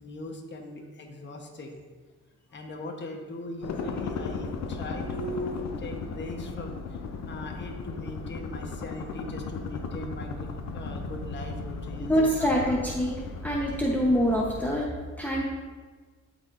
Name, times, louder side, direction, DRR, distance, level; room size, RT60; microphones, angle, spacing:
voice 1, 0.0-1.8 2.5-6.7 7.3-12.1 12.4-12.7, left 1 dB, 40° left, 2 dB, 1.1 m, -39 dB
sound 1, 3.6-14.9, left 4 dB, 60° left, 0.8 m, -36 dB
voice 2, 12.0-14.9 15.2-15.4, equal, 5° left, -3 dB, 0.9 m, -25 dB
12.5 x 4.6 x 2.6 m, 1.5 s
cardioid pair, 90°, 30 cm